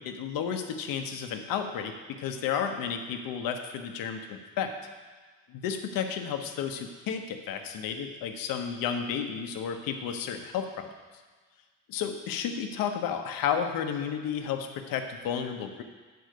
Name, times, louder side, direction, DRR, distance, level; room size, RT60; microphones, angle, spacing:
voice 1, 0.0-4.7 5.5-10.9 11.9-15.8, left 7 dB, 85° left, 6 dB, 1.0 m, -32 dB
9.3 x 4.8 x 6.6 m, 1.4 s
cardioid pair, 160°, 33 cm